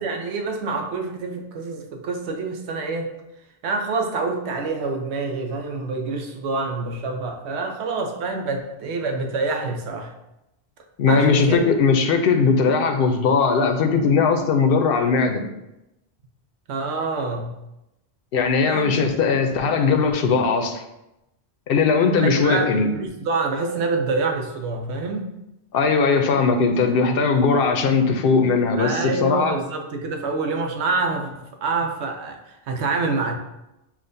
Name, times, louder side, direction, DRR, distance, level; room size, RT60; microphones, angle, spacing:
voice 1, 0.0-3.2 3.6-10.1 11.1-11.7 16.7-17.5 18.7-19.1 22.1-25.3 28.8-31.3 31.6-33.4, right 3 dB, 85° right, 4 dB, 0.9 m, -26 dB
voice 2, 11.0-15.4 18.3-20.8 21.7-22.9 25.7-29.5, left 5 dB, 65° left, 6 dB, 0.7 m, -19 dB
7.3 x 2.4 x 2.6 m, 0.91 s
omnidirectional pair, 1.1 m